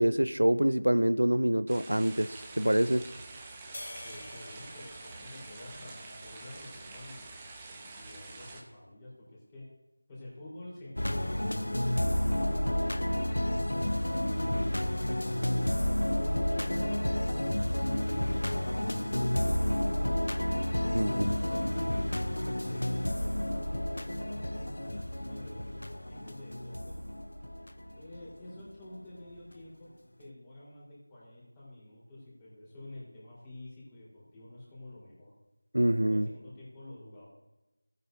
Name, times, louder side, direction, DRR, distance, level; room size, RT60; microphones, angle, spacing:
voice 1, 0.0-3.0 20.9-21.2 35.7-36.3, right 1 dB, 85° right, 14 dB, 0.5 m, -26 dB
sound 1, 1.7-8.6, right 3 dB, 15° right, 1.0 m, -47 dB
sound 2, 3.7-6.3, left 1 dB, 55° left, 1.1 m, -48 dB
voice 2, 4.0-7.3 7.7-9.6 10.1-13.1 13.6-14.7 15.3-20.1 20.6-22.1 22.6-27.0 27.9-29.9 30.2-35.3 36.1-37.3, left 1 dB, 15° left, -8 dB, 4.2 m, -49 dB
sound 3, 11.0-28.6 29.3-29.5, left 1 dB, 75° left, 0.9 m, -30 dB
17.5 x 9.3 x 2.7 m, 1.0 s
figure-of-eight pair, 170°, 0 cm